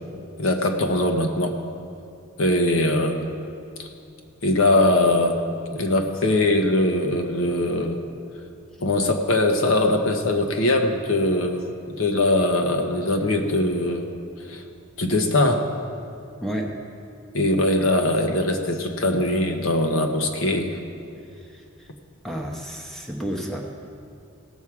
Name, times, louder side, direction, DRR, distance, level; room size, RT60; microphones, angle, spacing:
voice 1, 0.4-1.5 2.4-3.2 3.8-3.9 4.4-5.4 5.7-8.0 8.8-11.6 11.9-14.1 14.5-14.6 15.0-15.6 17.3-20.8, left 1 dB, 65° left, 4 dB, 1.1 m, -21 dB
voice 2, 16.4-16.8 21.4-21.6 22.2-23.8, equal, ahead, 0 dB, 1.0 m, -31 dB
18.0 x 7.4 x 4.8 m, 2.6 s
head